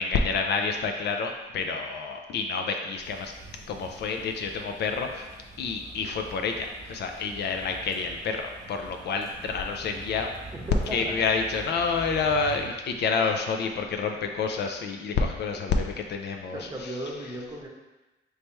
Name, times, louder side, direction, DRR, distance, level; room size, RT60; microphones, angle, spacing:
voice 1, 0.0-3.3 3.7-5.3 5.6-10.3 10.9-16.9, left 4 dB, 60° left, 4 dB, 0.4 m, -28 dB
sound 1, 3.0-12.7, right 2 dB, 15° left, 1.0 m, -45 dB
voice 2, 10.5-11.2 16.5-17.7, right 1 dB, 20° right, -2 dB, 0.8 m, -36 dB
3.3 x 3.1 x 3.0 m, 1.1 s
cardioid pair, 90°, 20 cm